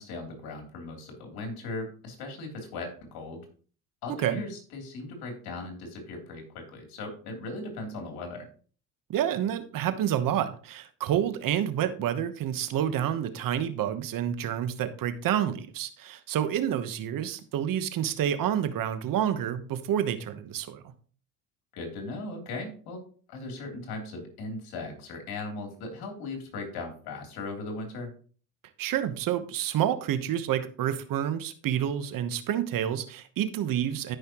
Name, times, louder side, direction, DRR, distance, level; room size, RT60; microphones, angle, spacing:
voice 1, 0.0-3.4 4.0-8.5 21.7-23.0 23.3-28.1, left 2 dB, 75° left, 2 dB, 3.4 m, -38 dB
voice 2, 9.1-20.9 28.8-34.2, right 10 dB, 60° right, 11 dB, 1.2 m, -29 dB
13.5 x 5.6 x 3.0 m, 0.42 s
cardioid pair, 95°, 37 cm